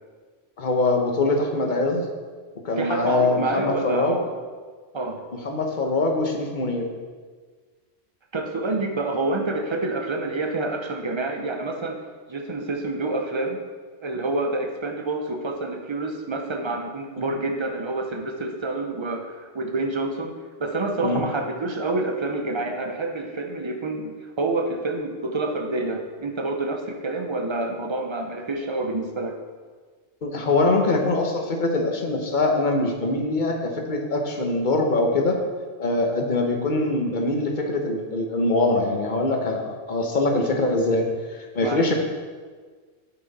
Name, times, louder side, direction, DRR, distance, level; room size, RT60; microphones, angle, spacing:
voice 1, 0.6-2.0 2.6-4.2 5.3-6.9 17.2-17.3 21.0-21.2 30.2-35.4 35.8-41.9, left 2 dB, 45° left, 2 dB, 1.1 m, -23 dB
voice 2, 2.8-4.3 4.9-5.2 8.3-12.0 12.3-13.6 14.0-20.3 20.6-29.4 41.6-41.8, right 2 dB, 25° right, 3 dB, 0.7 m, -27 dB
9.1 x 6.1 x 4.1 m, 1.5 s
omnidirectional pair, 1.2 m